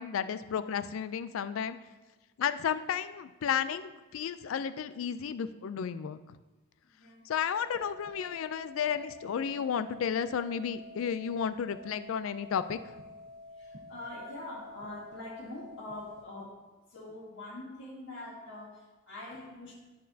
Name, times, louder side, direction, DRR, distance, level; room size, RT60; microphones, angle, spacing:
voice 1, 0.0-1.8 2.4-6.2 7.3-12.8, left 7 dB, 80° left, 12 dB, 0.3 m, -32 dB
voice 2, 6.8-7.3 11.6-11.7 13.6-16.6 16.9-19.7, left 2 dB, 65° left, -7 dB, 1.7 m, -44 dB
sound 1, 7.6-16.2, left 2 dB, 85° right, 1.1 m, -49 dB
11.0 x 4.3 x 2.7 m, 1.2 s
head